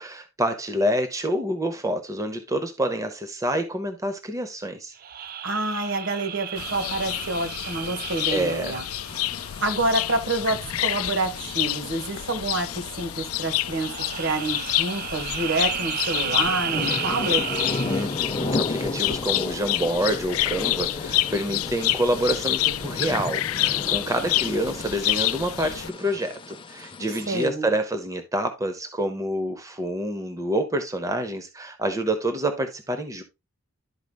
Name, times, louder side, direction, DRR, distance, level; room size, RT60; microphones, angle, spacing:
voice 1, 0.0-4.9 8.3-8.7 17.9-33.2, right 1 dB, 15° right, 0.8 m, -27 dB
sound 1, 5.0-9.7 13.6-18.3, right 9 dB, 45° right, 0.4 m, -33 dB
voice 2, 5.4-8.8 9.6-13.9 14.2-17.6 27.3-27.7, right 2 dB, 60° right, 1.4 m, -28 dB
sound 2, 6.6-25.9, left 15 dB, 75° left, 0.4 m, -28 dB
sound 3, 9.1-27.5, left 2 dB, 25° left, 0.6 m, -35 dB
12.0 x 4.9 x 2.3 m
head